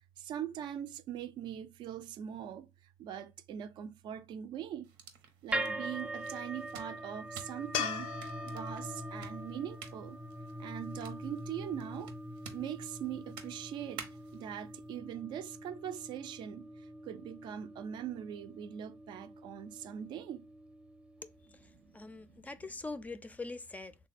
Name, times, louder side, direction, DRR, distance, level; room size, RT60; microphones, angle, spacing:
voice 1, 0.2-2.7 3.0-4.9 5.4-8.1 8.4-10.2 10.6-12.1 12.5-14.1 14.3-20.5 21.6-22.5, right 10 dB, 65° right, 0.4 m, -42 dB
sound 1, 4.8-14.4, right 6 dB, 90° right, 0.8 m, -53 dB
sound 2, 5.5-21.7, right 1 dB, 15° right, 0.7 m, -43 dB
sound 3, 7.7-11.0 14.2-14.3, left 8 dB, 85° left, 0.5 m, -41 dB
voice 2, 21.9-23.9, left 3 dB, 20° left, 0.4 m, -42 dB
3.2 x 2.2 x 4.1 m
cardioid pair, 95°, 8 cm